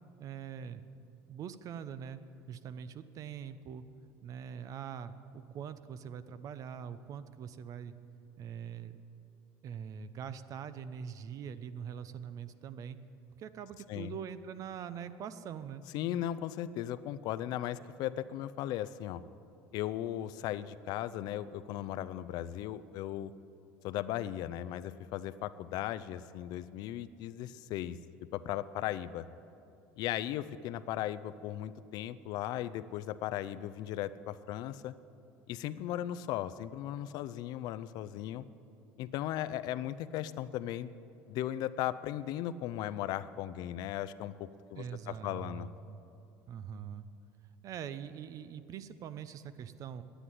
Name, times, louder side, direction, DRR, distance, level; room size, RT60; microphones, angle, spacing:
voice 1, 0.2-0.8 1.3-2.2 2.5-3.8 4.2-7.9 8.4-9.0 9.6-13.0 13.4-15.8 44.7-46.0 46.5-47.1 47.6-50.0, right 8 dB, 50° right, 13 dB, 0.7 m, -43 dB
voice 2, 15.9-19.2 19.7-23.3 23.8-28.0 28.3-29.3 30.0-34.9 35.5-38.4 39.0-40.9 41.3-45.7, left 12 dB, 60° left, 15 dB, 0.5 m, -37 dB
10.0 x 9.3 x 9.9 m, 2.7 s
supercardioid pair, 100°, 8 cm